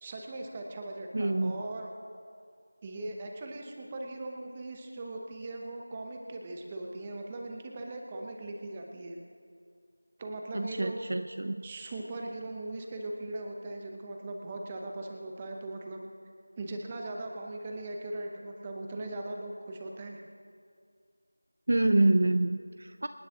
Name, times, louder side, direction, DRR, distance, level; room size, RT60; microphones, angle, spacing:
voice 1, 0.0-1.9 2.8-9.2 10.2-11.0 11.6-16.0 16.6-20.2, right 2 dB, 10° right, 1 dB, 0.7 m, -39 dB
voice 2, 1.1-1.6 10.5-11.6 21.7-23.1, right 2 dB, 35° right, 9 dB, 0.4 m, -27 dB
27.0 x 9.6 x 3.6 m, 2.2 s
figure-of-eight pair, 180°, 0 cm